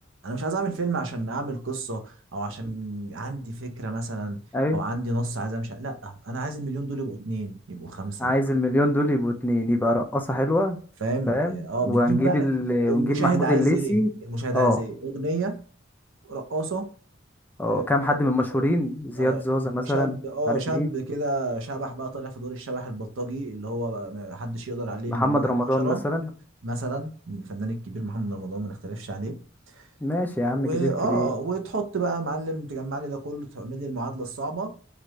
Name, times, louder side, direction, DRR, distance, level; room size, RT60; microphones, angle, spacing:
voice 1, 0.2-4.4 4.7-8.3 11.0-12.5 12.8-15.6 16.2-16.9 17.7-18.2 18.5-18.7 19.2-19.4 19.7-26.1 26.6-29.4 29.7-29.9 30.5-34.8, right 2 dB, 75° right, 0.7 m, -30 dB
voice 2, 8.2-10.8 11.3-14.1 14.5-14.8 17.6-20.1 20.5-20.9 25.1-26.3 30.0-31.3, left 1 dB, 10° left, 0.4 m, -24 dB
3.2 x 2.5 x 3.0 m
head